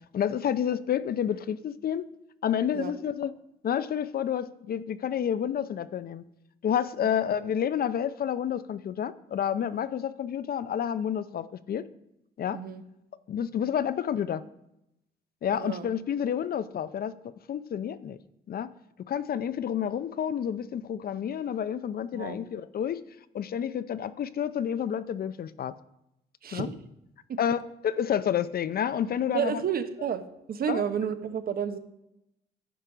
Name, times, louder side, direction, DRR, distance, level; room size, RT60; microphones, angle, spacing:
voice 1, 0.1-2.1 2.4-3.3 3.6-6.2 6.6-11.8 12.4-12.6 13.3-14.4 15.4-17.1 17.5-18.2 18.5-18.7 19.1-23.0 23.3-25.7 26.5-26.7 27.4-29.6 30.7-30.8, left 9 dB, 55° left, 15 dB, 0.6 m, -29 dB
voice 2, 12.5-12.8 15.5-15.9 22.1-22.4 26.4-26.7 27.3-27.4 29.3-30.2 30.5-31.8, right 8 dB, 55° right, 9 dB, 1.0 m, -30 dB
10.0 x 5.4 x 5.0 m, 0.84 s
supercardioid pair, 70°, 19 cm